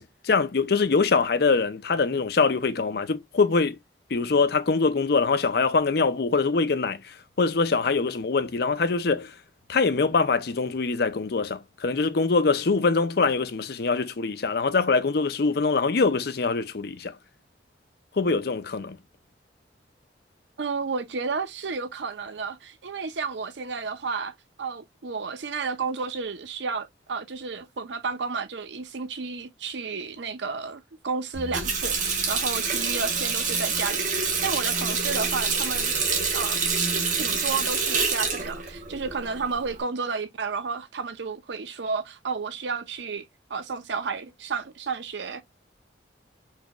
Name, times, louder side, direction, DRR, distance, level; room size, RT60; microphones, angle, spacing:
voice 1, 0.0-3.8 4.1-9.3 9.7-17.2 18.2-19.0, left 4 dB, 60° left, 0.5 m, -23 dB
voice 2, 20.6-35.9 36.3-36.6 37.1-43.2 43.5-45.4, right 5 dB, 75° right, 0.6 m, -32 dB
Water tap faucet, 31.3-39.8, right 5 dB, 45° right, 1.2 m, -27 dB
4.5 x 3.0 x 2.2 m
head